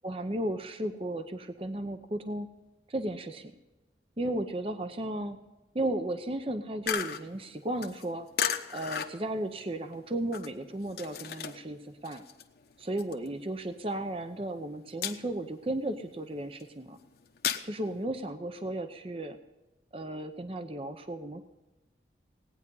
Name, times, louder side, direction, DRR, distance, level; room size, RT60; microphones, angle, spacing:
voice 1, 0.0-2.5 2.9-3.5 4.2-5.4 5.7-8.3 8.7-12.2 12.8-17.0 17.6-19.4 19.9-21.4, right 1 dB, 30° right, 8 dB, 0.7 m, -34 dB
sound 1, 6.9-11.8 12.0-14.0 14.3-14.6 14.9-15.5 16.0-17.6, left 8 dB, 60° left, 1.0 m, -34 dB
18.5 x 9.6 x 5.5 m, 1.1 s
head